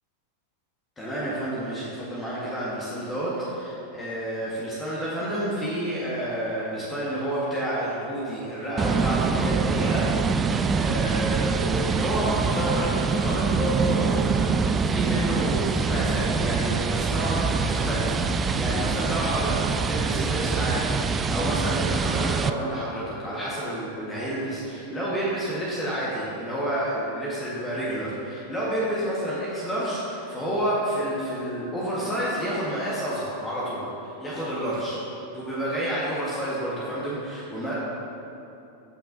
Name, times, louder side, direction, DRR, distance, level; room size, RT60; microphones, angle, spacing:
voice 1, 1.0-35.0 35.3-37.7, right 1 dB, 15° left, -7 dB, 1.5 m, -29 dB
sound 1, 8.8-22.5, right 5 dB, 20° right, 0.3 m, -24 dB
14.0 x 6.0 x 2.7 m, 2.9 s
figure-of-eight pair, 90°, 0 cm